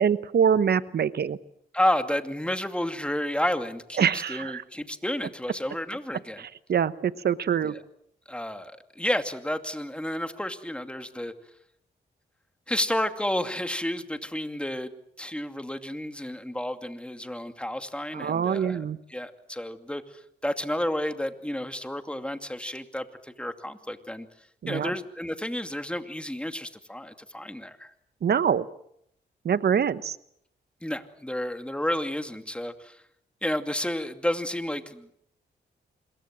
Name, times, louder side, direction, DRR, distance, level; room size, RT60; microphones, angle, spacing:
voice 1, 0.0-1.4 4.0-4.6 6.7-7.7 18.1-19.0 24.6-24.9 28.2-28.6 29.4-30.2, right 7 dB, 65° right, 14 dB, 1.2 m, -24 dB
voice 2, 1.7-6.4 7.6-7.8 8.3-11.3 12.7-14.9 15.2-24.3 24.7-27.9 30.8-33.0 33.4-35.1, left 1 dB, 5° left, 7 dB, 2.5 m, -31 dB
26.5 x 22.0 x 7.5 m, 0.73 s
cardioid pair, 75°, 18 cm